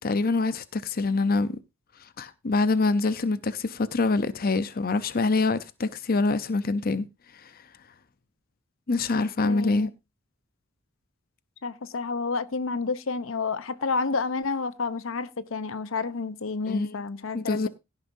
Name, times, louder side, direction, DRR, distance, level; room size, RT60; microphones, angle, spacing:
voice 1, 0.0-1.6 2.0-7.1 7.3-7.5 8.9-9.9 16.7-17.0 17.3-17.7, left 3 dB, 50° left, 0.7 m, -25 dB
voice 2, 9.1-9.9 11.6-17.7, left 4 dB, 85° left, 0.8 m, -30 dB
16.5 x 9.9 x 2.7 m
head